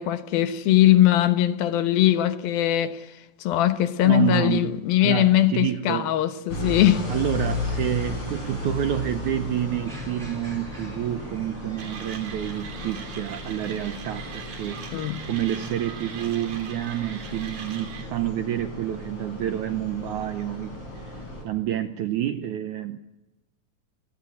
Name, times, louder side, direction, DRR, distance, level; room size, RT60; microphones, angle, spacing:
voice 1, 0.0-3.0 3.4-7.1 14.9-15.3, left 12 dB, 75° left, 2.8 m, -21 dB
voice 2, 4.1-6.1 7.1-14.8 15.3-21.2 21.4-23.0, right 12 dB, 75° right, 1.8 m, -28 dB
sound 1, 6.5-21.4, left 1 dB, 30° left, 7.6 m, -35 dB
sound 2, 9.7-14.8, right 1 dB, 10° right, 5.1 m, -49 dB
Mechanisms, 11.8-18.1, right 6 dB, 55° right, 4.6 m, -41 dB
27.5 x 18.5 x 8.6 m
omnidirectional pair, 4.5 m